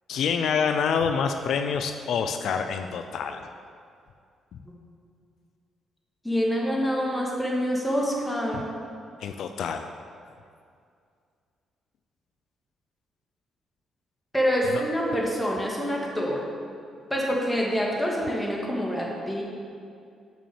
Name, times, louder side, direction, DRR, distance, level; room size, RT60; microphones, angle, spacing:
voice 1, 0.1-3.5 8.5-8.6 9.2-9.9 14.7-14.8, left 6 dB, 70° left, 7 dB, 0.4 m, -27 dB
voice 2, 6.2-8.7 14.3-16.4 17.1-19.4, equal, 10° left, -3 dB, 1.9 m, -26 dB
6.9 x 6.0 x 7.2 m, 2.3 s
cardioid pair, 90°, 0 cm